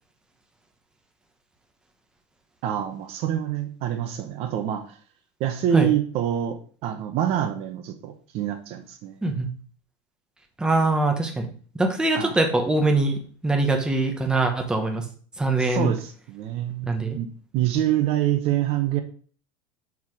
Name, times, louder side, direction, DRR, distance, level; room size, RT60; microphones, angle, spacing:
voice 1, 2.6-5.0 5.4-9.2 12.2-12.4 15.6-17.3 17.5-19.0, right 11 dB, 45° right, 7 dB, 0.8 m, -26 dB
voice 2, 10.6-11.5 11.8-15.0 15.4-15.9 16.9-17.2, right 2 dB, 5° right, 3 dB, 1.0 m, -23 dB
5.6 x 4.8 x 4.7 m, 0.43 s
supercardioid pair, 150°, 14 cm